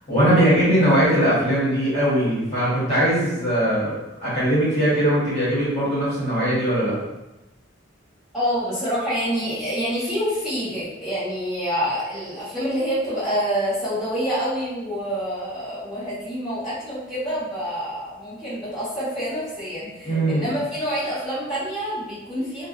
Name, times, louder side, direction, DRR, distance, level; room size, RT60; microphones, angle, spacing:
voice 1, 0.1-7.0 20.0-20.4, right 1 dB, 35° left, -11 dB, 1.1 m, -20 dB
voice 2, 8.3-22.7, equal, 5° right, -15 dB, 1.0 m, -27 dB
2.6 x 2.2 x 2.3 m, 0.98 s
head